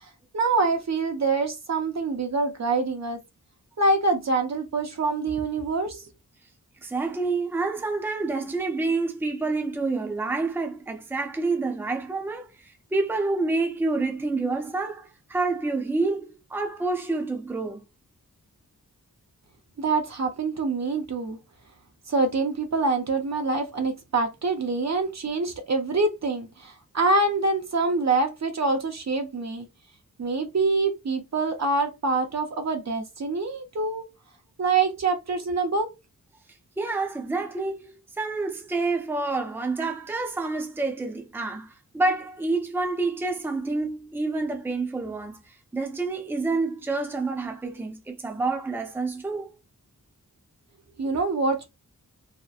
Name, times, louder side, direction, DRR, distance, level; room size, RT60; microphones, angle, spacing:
voice 1, 0.3-3.2 3.8-6.0 19.8-21.4 22.1-29.7 30.2-34.0 34.6-35.9 51.0-51.7, right 3 dB, 50° right, 0.6 m, -25 dB
voice 2, 6.8-17.8 36.8-45.4 45.7-49.5, right 3 dB, 5° right, 0.5 m, -28 dB
2.8 x 2.1 x 2.3 m
wide cardioid pair, 85°, 35 cm